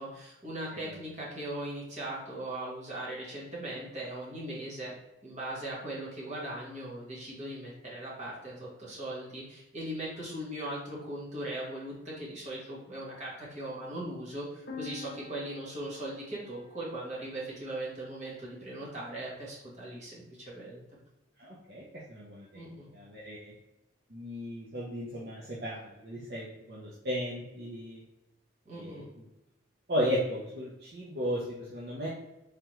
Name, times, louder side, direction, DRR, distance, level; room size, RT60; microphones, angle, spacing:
voice 1, 0.0-4.9 5.2-20.8 22.5-22.9 28.6-29.1, right 1 dB, 40° right, -6 dB, 1.5 m, -39 dB
sound 1, 14.7-18.4, left 4 dB, 65° left, 0.7 m, -49 dB
voice 2, 21.4-22.6 22.9-23.5 24.1-28.0 28.7-29.0 29.9-32.1, equal, 55° right, -5 dB, 0.7 m, -35 dB
3.6 x 3.4 x 3.0 m, 0.92 s
head